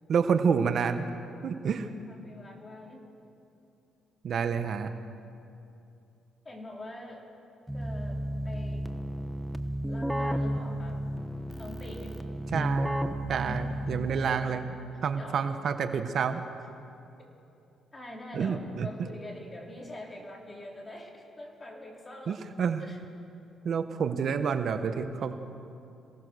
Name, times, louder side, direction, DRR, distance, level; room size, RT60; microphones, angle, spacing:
voice 1, 0.1-1.0 1.4-1.9 4.2-4.9 12.5-13.0 13.3-14.6 15.0-16.4 18.3-18.9 22.3-22.9 23.6-25.3, right 6 dB, 60° right, 8 dB, 1.2 m, -28 dB
voice 2, 2.1-3.0 6.4-7.2 7.7-8.2 8.4-8.9 9.9-11.0 11.6-12.1 13.3-14.6 15.2-15.5 17.9-22.4 22.8-23.0, left 1 dB, 20° left, 0 dB, 4.3 m, -44 dB
Keyboard (musical), 7.7-14.5, equal, 5° right, 1.2 m, -33 dB
27.5 x 17.5 x 6.6 m, 2.7 s
cardioid pair, 90°, 0 cm